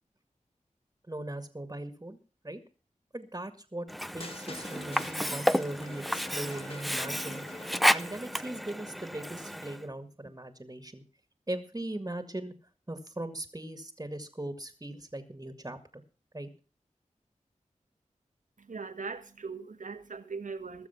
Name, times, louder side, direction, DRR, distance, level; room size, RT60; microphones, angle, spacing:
voice 1, 1.1-2.2 2.4-2.6 3.1-7.5 7.9-11.0 11.5-12.5 12.9-16.0 16.3-16.5, right 1 dB, 25° right, 2.1 m, -39 dB
Sink (filling or washing), 3.9-9.8, equal, ahead, 0.6 m, -31 dB
sound 1, 4.2-8.5, left 1 dB, 45° left, 1.9 m, -45 dB
voice 2, 18.6-20.9, right 4 dB, 75° right, 1.5 m, -40 dB
21.0 x 7.1 x 5.9 m
cardioid pair, 45°, 13 cm